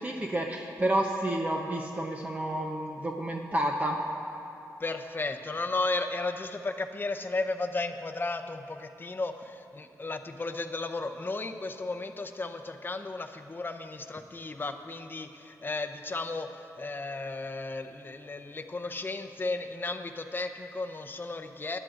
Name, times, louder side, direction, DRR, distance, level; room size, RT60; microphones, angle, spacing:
voice 1, 0.0-4.0, right 1 dB, 25° right, 0 dB, 0.8 m, -30 dB
voice 2, 4.8-21.8, left 3 dB, 30° left, 6 dB, 0.8 m, -34 dB
20.0 x 11.0 x 2.6 m, 2.8 s
cardioid pair, 80°, 7 cm